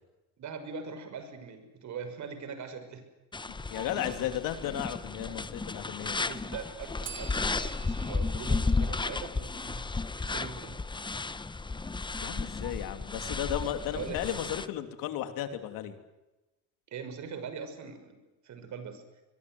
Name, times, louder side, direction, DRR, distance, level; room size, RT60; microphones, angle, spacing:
voice 1, 0.4-3.0 6.0-10.8 13.9-14.4 16.9-19.0, right 6 dB, 60° right, 9 dB, 6.1 m, -42 dB
sound 1, 3.3-14.7, left 3 dB, 15° left, 0.9 m, -33 dB
voice 2, 3.7-6.2 12.2-16.0, left 11 dB, 85° left, 8 dB, 3.0 m, -34 dB
Bell, 7.0-9.9, right 8 dB, 35° right, 2.1 m, -49 dB
25.5 x 22.0 x 7.9 m, 1.0 s
cardioid pair, 105°, 33 cm